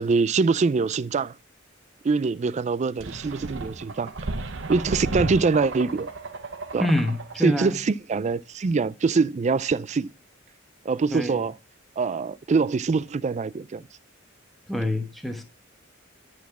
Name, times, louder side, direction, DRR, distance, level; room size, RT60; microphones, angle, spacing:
voice 1, 0.0-1.3 2.0-4.1 4.7-6.1 6.7-6.9 7.4-10.1 10.9-11.5 12.0-13.8, right 4 dB, 35° right, 0.3 m, -24 dB
sound 1, 3.0-7.5, right 2 dB, 65° right, 1.0 m, -33 dB
voice 2, 6.8-7.8 11.1-11.4 14.7-15.4, left 1 dB, ahead, 1.1 m, -26 dB
11.0 x 4.2 x 5.9 m
head